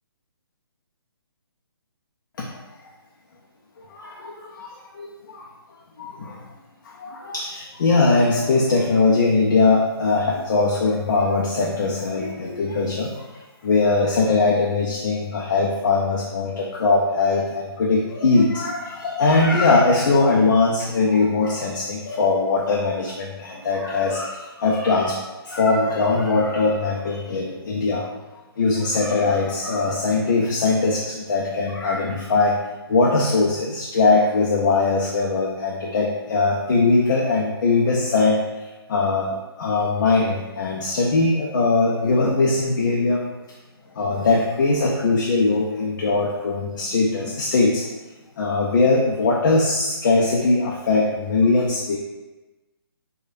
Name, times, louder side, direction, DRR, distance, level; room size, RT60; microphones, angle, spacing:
voice 1, 3.9-5.5 6.0-6.4 6.8-13.2 13.6-25.2 25.5-28.1 28.6-32.6 32.9-43.2 44.0-47.9 48.4-52.0, left 3 dB, 50° left, -2 dB, 0.4 m, -21 dB
3.1 x 2.2 x 2.6 m, 1.1 s
figure-of-eight pair, 140°, 13 cm